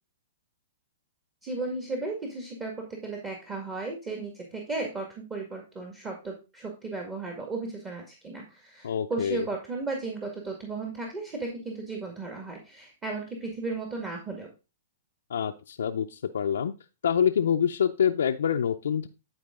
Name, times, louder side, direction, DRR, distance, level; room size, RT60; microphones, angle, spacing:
voice 1, 1.4-14.5, right 3 dB, 20° right, 1 dB, 2.0 m, -35 dB
voice 2, 8.8-9.5 15.3-16.7 17.0-19.1, left 8 dB, 75° left, 2 dB, 0.5 m, -26 dB
11.5 x 4.5 x 3.8 m, 0.29 s
hypercardioid pair, 125°, 0 cm